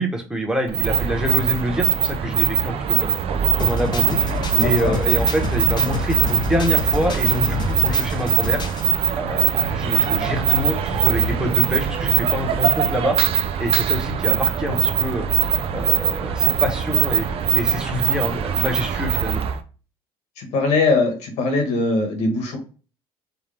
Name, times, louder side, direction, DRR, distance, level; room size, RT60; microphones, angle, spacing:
voice 1, 0.0-3.2 3.6-4.2 4.6-8.6 9.1-13.2 13.6-15.3 15.7-17.3 17.5-19.4, equal, 5° right, 2 dB, 1.1 m, -26 dB
sound 1, 0.7-19.6, right 9 dB, 55° right, 0.5 m, -21 dB
sound 2, 3.6-8.9, left 4 dB, 40° left, 0.6 m, -28 dB
voice 2, 4.5-4.9 20.4-22.6, left 3 dB, 75° left, 4 dB, 1.5 m, -21 dB
4.8 x 2.4 x 3.4 m, 0.36 s
supercardioid pair, 85°, 12 cm